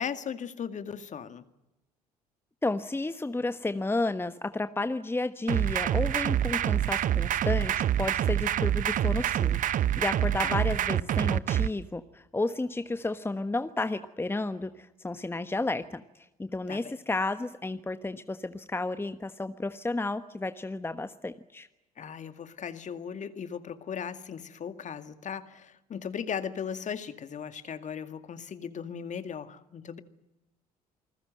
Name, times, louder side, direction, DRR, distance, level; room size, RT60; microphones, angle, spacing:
voice 1, 0.0-1.4 10.4-10.6 16.7-16.9 22.0-30.0, left 7 dB, 40° left, 10 dB, 2.1 m, -37 dB
voice 2, 2.6-21.7, left 2 dB, 10° left, 11 dB, 1.2 m, -32 dB
sound 1, 5.5-11.7, right 11 dB, 45° right, 0.8 m, -26 dB
28.0 x 20.5 x 7.8 m, 0.96 s
figure-of-eight pair, 55°, 19 cm